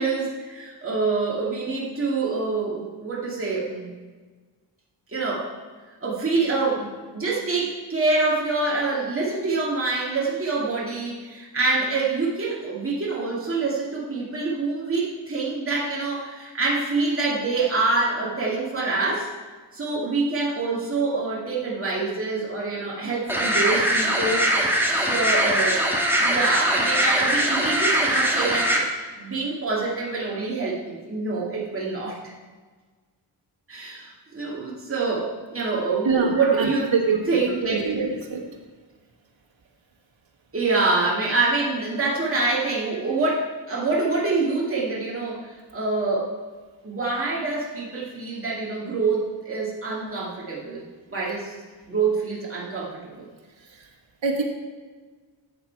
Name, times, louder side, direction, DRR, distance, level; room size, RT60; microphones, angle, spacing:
voice 1, 0.0-3.9 5.1-5.5 6.0-19.3 19.7-24.5 24.9-25.9 26.2-28.8 29.2-32.3 33.7-36.9 37.3-37.9 40.5-46.3 46.8-51.5 51.9-53.3, right 3 dB, 30° right, -5 dB, 2.3 m, -26 dB
sound 1, 23.3-28.8, right 1 dB, 5° right, 1.6 m, -22 dB
voice 2, 36.0-38.4 54.2-54.4, right 4 dB, 80° right, 0 dB, 1.6 m, -25 dB
13.5 x 7.8 x 4.6 m, 1.4 s
wide cardioid pair, 130°, 46 cm